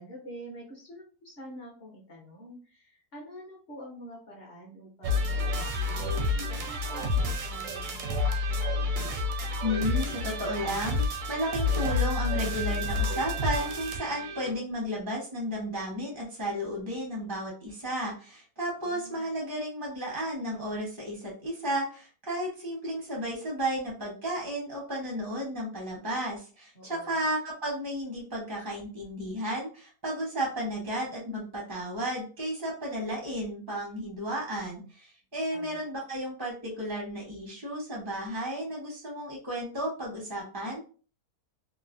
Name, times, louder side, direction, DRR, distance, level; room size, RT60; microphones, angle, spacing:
voice 1, 0.0-8.7 18.8-19.2 26.7-27.2 35.5-35.8, equal, 45° left, -3 dB, 0.9 m, -47 dB
sound 1, 5.0-14.5, left 2 dB, 70° right, 0.8 m, -29 dB
voice 2, 9.6-40.8, equal, 25° right, -2 dB, 0.5 m, -33 dB
3.0 x 2.0 x 2.4 m, 0.37 s
omnidirectional pair, 1.7 m